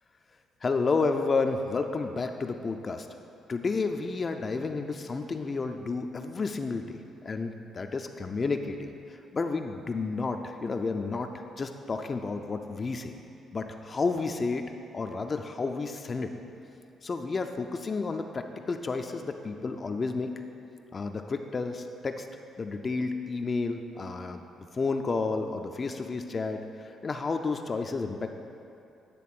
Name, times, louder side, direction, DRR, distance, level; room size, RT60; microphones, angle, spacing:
voice 1, 0.6-3.1 3.5-13.1 13.5-16.3 17.0-20.3 20.9-22.3 22.6-28.4, left 4 dB, 35° left, 6 dB, 0.4 m, -31 dB
9.2 x 3.5 x 5.9 m, 2.6 s
cardioid pair, 90°, 0 cm